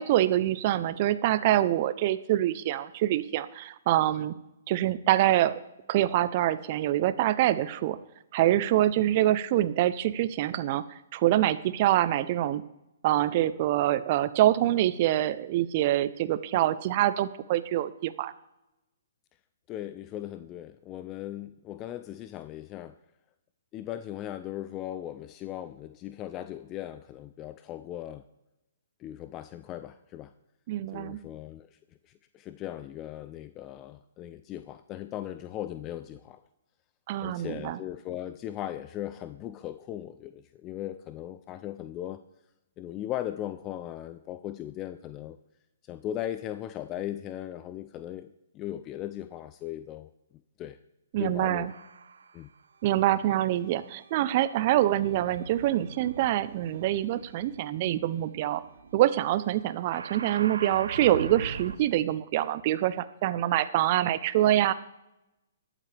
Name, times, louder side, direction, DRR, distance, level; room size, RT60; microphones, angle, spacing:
voice 1, 0.0-4.3 4.7-5.6 5.9-8.0 8.3-10.8 11.1-12.6 13.0-18.3 30.7-31.2 37.1-37.8 51.1-51.7 52.8-58.6 58.9-64.7, right 13 dB, 40° right, 15 dB, 0.6 m, -25 dB
voice 2, 19.7-22.9 23.7-28.2 29.0-30.3 30.9-31.7 32.3-36.4 37.2-42.2 42.8-45.4 45.9-50.1 50.6-50.8 51.2-51.7 52.3-52.5, left 12 dB, 25° left, 11 dB, 0.4 m, -38 dB
sound 1, 51.7-52.4 53.2-61.8, right 5 dB, 75° right, 0.8 m, -43 dB
20.5 x 7.5 x 3.4 m, 0.92 s
hypercardioid pair, 135°, 0 cm